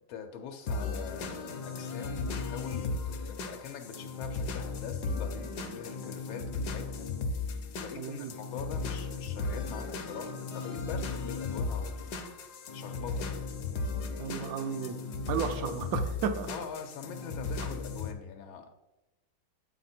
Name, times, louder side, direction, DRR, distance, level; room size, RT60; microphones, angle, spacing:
voice 1, 0.1-12.1 12.7-13.4 15.6-15.8 16.5-18.7, left 6 dB, 85° left, 4 dB, 1.5 m, -43 dB
sound 1, 0.7-18.1, left 3 dB, 65° left, 1.2 m, -36 dB
voice 2, 8.0-8.3 14.2-15.0 15.3-16.5, right 6 dB, 75° right, 9 dB, 0.8 m, -33 dB
9.2 x 4.2 x 4.2 m, 1.0 s
omnidirectional pair, 2.2 m